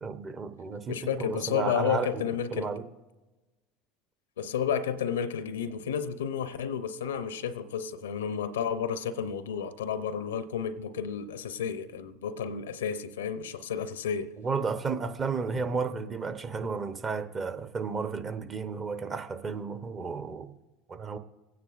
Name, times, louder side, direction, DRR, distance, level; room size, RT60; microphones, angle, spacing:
voice 1, 0.0-2.2 2.5-2.9 14.4-20.6 20.9-21.2, right 5 dB, 35° right, 0.8 m, -33 dB
voice 2, 0.9-2.7 4.4-14.3, left 7 dB, 90° left, 0.6 m, -31 dB
26.0 x 9.4 x 2.5 m
hypercardioid pair, 85°, 0 cm